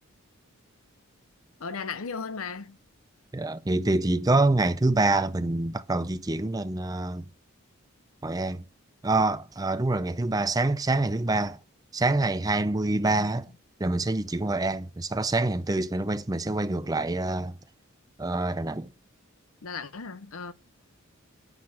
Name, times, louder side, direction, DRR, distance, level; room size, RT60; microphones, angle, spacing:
voice 1, 1.6-2.8 19.6-20.5, left 5 dB, 75° left, 0.7 m, -36 dB
voice 2, 3.3-7.3 8.2-8.6 9.0-11.6 11.9-13.5 13.8-17.6 18.2-18.9, right 2 dB, 15° right, 0.5 m, -26 dB
9.8 x 6.7 x 8.5 m
head